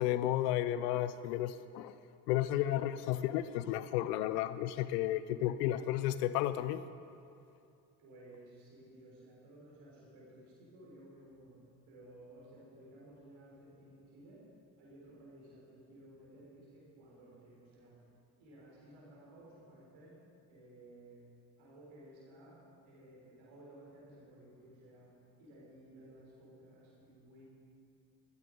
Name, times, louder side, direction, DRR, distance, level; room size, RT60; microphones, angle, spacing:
voice 1, 0.0-1.9 2.3-6.8, left 13 dB, 90° left, 14 dB, 0.5 m, -33 dB
voice 2, 8.0-11.6 11.9-14.5 14.8-18.0 18.4-20.2 20.5-21.2 21.6-27.4, right 1 dB, 75° right, -5 dB, 4.0 m, -56 dB
14.0 x 11.5 x 5.1 m, 2.5 s
hypercardioid pair, 50°, 47 cm